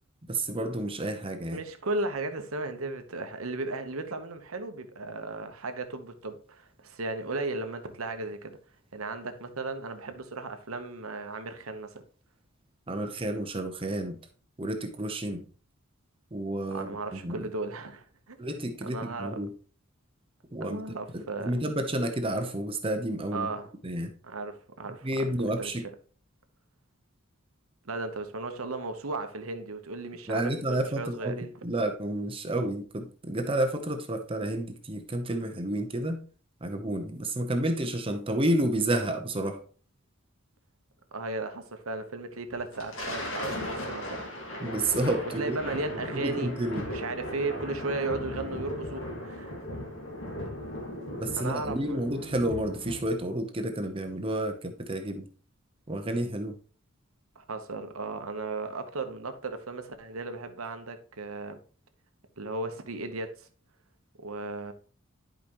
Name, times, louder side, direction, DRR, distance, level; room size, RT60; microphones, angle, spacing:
voice 1, 0.3-1.6 12.9-14.2 14.6-15.5 16.3-17.5 18.4-19.5 20.5-20.8 21.1-23.5 23.8-24.1 25.0-25.9 30.3-36.2 36.6-39.6 44.6-45.6 46.1-46.9 51.1-55.3 55.9-56.6, right 1 dB, 25° right, 0.8 m, -30 dB
voice 2, 1.5-8.6 8.9-12.0 16.7-18.4 18.8-19.4 20.6-21.5 23.3-23.7 24.2-25.7 27.8-31.5 41.1-44.3 45.4-46.5 46.8-49.6 51.4-52.0 57.4-61.6 62.4-63.5 64.2-64.7, right 3 dB, 85° right, 1.1 m, -35 dB
Thunder, 42.6-53.3, left 1 dB, 65° left, 2.0 m, -37 dB
11.0 x 5.0 x 3.0 m
head